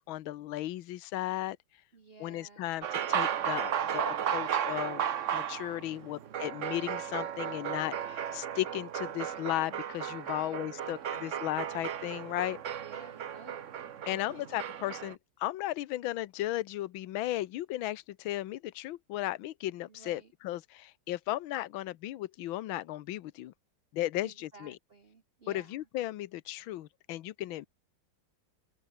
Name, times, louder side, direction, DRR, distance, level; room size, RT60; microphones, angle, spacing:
voice 1, 0.0-1.6 2.2-5.0 5.3-12.6 14.1-23.5 23.9-24.8 25.5-27.7, left 15 dB, 75° left, 1.6 m, -35 dB
voice 2, 1.9-2.7 5.9-6.6 10.2-11.1 12.8-13.8 14.1-14.4 19.9-20.3 24.2-25.9, right 3 dB, 35° right, 1.3 m, -55 dB
sound 1, 2.8-15.1, right 9 dB, 50° right, 0.9 m, -35 dB
omnidirectional pair, 2.2 m